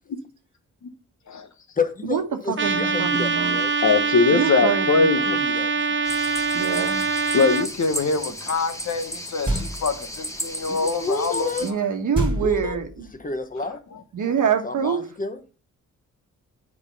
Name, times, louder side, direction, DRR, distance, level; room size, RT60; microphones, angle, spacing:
voice 1, 1.8-3.7 5.3-6.0 10.7-11.7 12.4-12.8 13.2-13.8 14.6-15.4, left 4 dB, 25° left, 1.2 m, -30 dB
voice 2, 2.5-3.6 4.3-5.1 6.5-7.1 11.6-13.1 14.1-15.0, right 7 dB, 70° right, 1.3 m, -25 dB
Trumpet, 2.6-7.7, right 5 dB, 40° right, 0.7 m, -24 dB
voice 3, 3.8-5.4 7.3-11.5, left 4 dB, 60° left, 1.2 m, -22 dB
sound 1, 6.0-11.7, equal, 10° left, 1.4 m, -34 dB
sound 2, 9.5-10.1 12.1-13.2, right 1 dB, 15° right, 2.3 m, -27 dB
6.4 x 5.2 x 5.4 m
cardioid pair, 75°, 32 cm